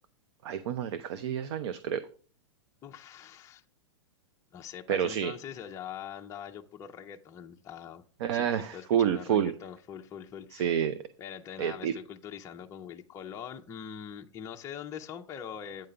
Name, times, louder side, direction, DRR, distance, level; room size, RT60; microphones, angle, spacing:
voice 1, 0.4-2.0 4.9-5.3 8.2-9.5 10.5-11.0 11.6-11.9, right 9 dB, 60° right, 0.7 m, -28 dB
voice 2, 2.8-3.6 4.5-8.0 8.3-8.5 8.7-10.8 11.2-15.9, left 8 dB, 20° left, 0.5 m, -43 dB
9.0 x 3.7 x 6.7 m
hypercardioid pair, 140°, 16 cm